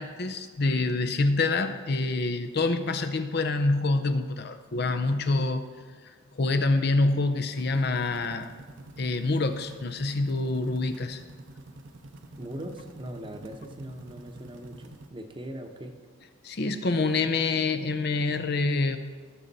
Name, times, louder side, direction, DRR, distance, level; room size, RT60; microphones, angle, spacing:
voice 1, 0.0-5.7 6.0-8.5 9.0-11.2 16.4-19.0, left 3 dB, 50° left, 9 dB, 0.6 m, -26 dB
sound 1, 7.5-15.1, right 2 dB, 65° right, 0.8 m, -47 dB
voice 2, 12.4-15.9, right 1 dB, 25° right, 5 dB, 0.9 m, -40 dB
18.0 x 6.5 x 4.1 m, 1.5 s
head